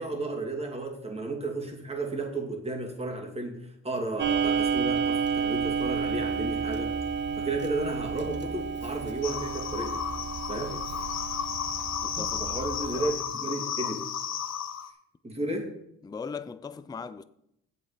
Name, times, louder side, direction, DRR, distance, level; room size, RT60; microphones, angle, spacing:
voice 1, 0.0-6.9 7.4-10.0 10.5-10.8 12.4-14.1 15.2-15.7, right 2 dB, 20° right, 2.4 m, -33 dB
Clock, 4.2-13.2, right 6 dB, 40° right, 0.9 m, -31 dB
sound 1, 9.2-14.9, left 8 dB, 60° left, 1.0 m, -33 dB
voice 2, 12.0-12.7 12.9-13.1 16.0-17.2, left 5 dB, 15° left, 0.4 m, -40 dB
8.1 x 7.6 x 5.0 m
cardioid pair, 90°, 30 cm